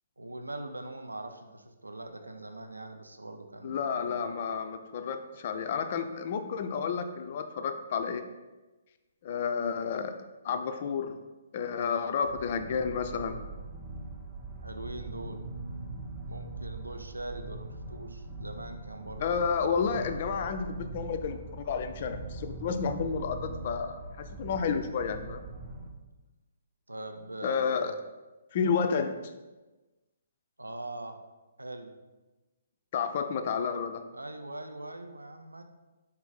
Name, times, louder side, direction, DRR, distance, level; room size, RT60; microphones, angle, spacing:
voice 1, 0.2-4.4 14.6-15.5 16.3-19.4 26.9-27.9 30.6-31.2 31.6-32.0 34.1-35.6, right 2 dB, 80° right, 6 dB, 0.4 m, -42 dB
voice 2, 3.6-8.2 9.2-10.2 10.4-11.2 11.5-13.4 19.2-25.4 27.4-27.9 28.5-29.3 32.9-34.0, left 6 dB, 40° left, 8 dB, 0.3 m, -31 dB
sound 1, 12.2-25.9, right 3 dB, 20° right, 0.6 m, -42 dB
4.0 x 2.5 x 3.8 m, 1.1 s
figure-of-eight pair, 130°, 0 cm